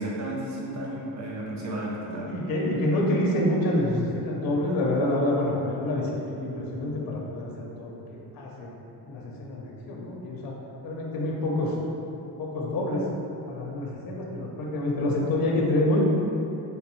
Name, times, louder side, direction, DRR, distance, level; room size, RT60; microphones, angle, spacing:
voice 1, 0.0-2.2, right 1 dB, 40° right, -4 dB, 0.7 m, -33 dB
voice 2, 2.0-8.7 9.0-10.5 10.8-11.7 12.4-13.1 13.5-16.0, left 1 dB, 55° left, -2 dB, 0.7 m, -27 dB
3.3 x 3.1 x 3.0 m, 3.0 s
cardioid pair, 145°, 42 cm